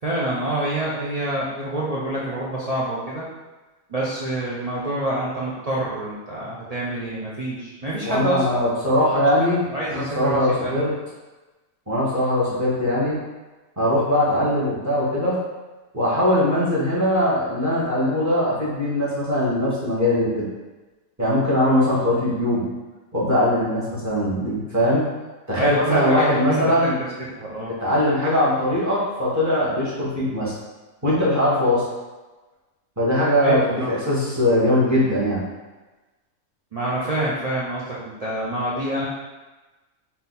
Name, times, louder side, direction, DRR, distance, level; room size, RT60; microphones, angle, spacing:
voice 1, 0.0-3.3 3.9-8.6 9.4-10.8 25.6-26.7 27.2-27.7 33.4-34.0 36.7-39.1, right 1 dB, 55° right, -7 dB, 0.4 m, -27 dB
voice 2, 8.0-10.9 11.9-13.1 13.8-15.4 15.9-20.5 21.2-22.6 23.1-25.0 25.5-26.9 27.8-30.5 31.0-31.8 33.0-35.4, left 1 dB, 15° right, -9 dB, 1.3 m, -21 dB
4.1 x 2.8 x 3.9 m, 1.2 s
omnidirectional pair, 1.5 m